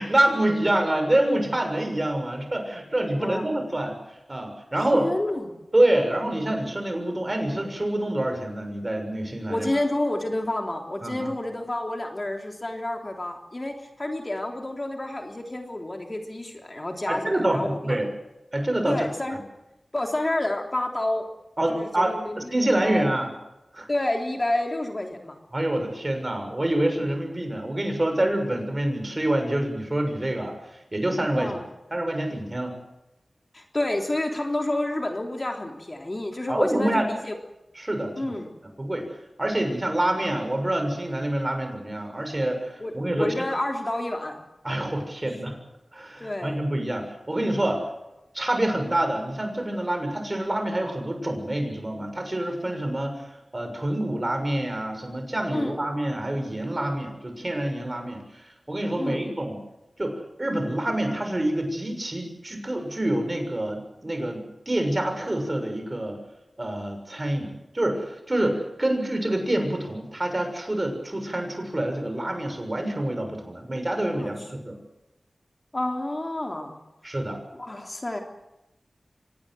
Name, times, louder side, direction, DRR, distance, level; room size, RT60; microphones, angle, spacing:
voice 1, 0.0-4.0 4.3-5.1 5.7-9.7 11.0-11.3 17.1-18.1 18.5-19.0 21.6-23.3 23.7-23.9 25.5-30.5 30.9-31.6 31.9-32.7 36.5-37.1 37.7-38.3 38.8-39.1 39.4-43.3 44.6-45.6 45.9-47.9 48.3-59.6 60.0-66.2 66.6-74.8 77.0-77.4, right 1 dB, 30° right, 5 dB, 6.8 m, -26 dB
voice 2, 4.9-5.5 9.5-18.0 18.8-19.4 19.9-21.3 21.7-22.5 22.8-23.1 23.9-25.4 31.4-31.6 33.5-37.3 38.2-38.5 42.8-44.4 46.2-46.6 55.5-55.7 59.0-59.2 74.0-74.3 75.7-76.8 77.5-78.2, left 1 dB, 35° left, 3 dB, 3.5 m, -29 dB
25.0 x 19.0 x 7.9 m, 0.93 s
cardioid pair, 50°, 0 cm